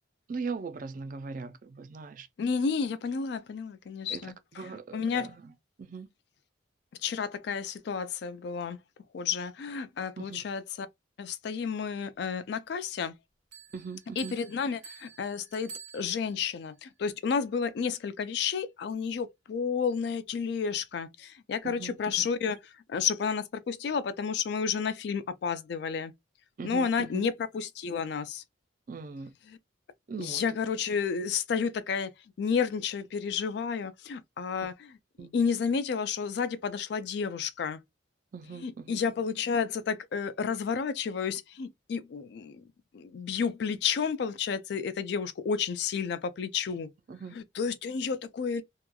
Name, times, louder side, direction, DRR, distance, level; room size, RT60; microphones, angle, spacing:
voice 1, 0.3-2.3 4.1-5.5 5.8-6.1 10.2-10.4 13.7-14.4 21.6-22.3 26.6-27.3 28.9-29.3 30.1-30.4 34.6-34.7 35.2-35.3 38.3-39.0 47.1-47.4, right 4 dB, 45° right, 0.3 m, -40 dB
voice 2, 2.4-4.3 4.9-5.3 7.0-8.8 9.1-10.9 11.2-13.2 14.2-22.6 22.9-26.1 26.6-28.4 29.5-29.6 30.2-32.1 32.4-35.0 35.3-37.8 38.6-42.7 42.9-46.9 47.4-48.6, left 6 dB, 60° left, 0.3 m, -31 dB
Bell, 13.5-16.6, right 6 dB, 80° right, 0.8 m, -49 dB
2.9 x 2.2 x 2.2 m
head